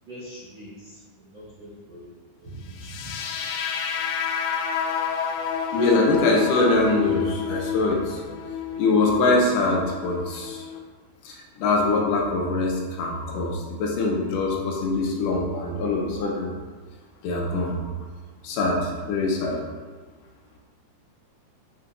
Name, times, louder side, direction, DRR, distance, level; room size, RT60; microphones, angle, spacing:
voice 1, 0.0-2.1 2.4-3.1, right 1 dB, 75° right, -11 dB, 1.1 m, -42 dB
sound 1, 2.8-10.8, left 7 dB, 90° left, 2.6 m, -30 dB
voice 2, 5.7-8.2 8.8-10.6 11.3-16.5 17.2-17.8 18.4-19.6, left 3 dB, 75° left, 0 dB, 2.0 m, -23 dB
7.1 x 5.4 x 2.7 m, 1.4 s
omnidirectional pair, 4.4 m